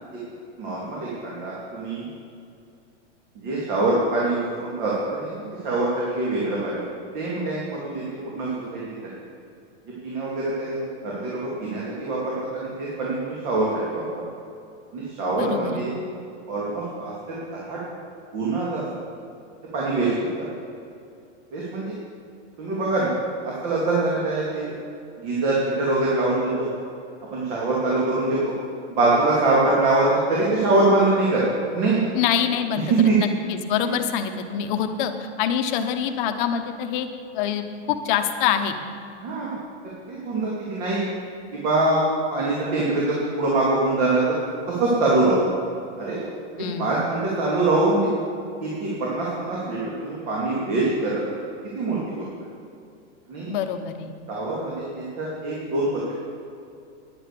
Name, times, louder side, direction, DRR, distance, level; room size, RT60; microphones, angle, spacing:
voice 1, 0.6-2.1 3.3-6.8 7.1-8.0 8.4-8.8 10.0-14.0 14.9-15.9 16.5-17.8 18.3-18.8 19.7-20.1 20.4-20.5 21.5-22.0 22.6-23.1 23.4-24.7 25.2-26.7 27.3-28.5 28.9-32.0 32.9-33.2 39.2-39.6 40.1-41.0 41.5-42.0 42.3-44.4 44.7-45.4 46.0-46.2 46.8-48.0 48.6-51.2 51.7-52.2 53.3-53.5 54.3-56.1, right 2 dB, 45° right, -5 dB, 2.7 m, -24 dB
voice 2, 15.4-15.8 32.1-32.9 33.2-37.1 37.3-38.7 46.6-46.9 53.5-54.1, left 9 dB, 45° left, 7 dB, 1.0 m, -25 dB
10.5 x 8.9 x 6.8 m, 2.5 s
supercardioid pair, 155°, 35 cm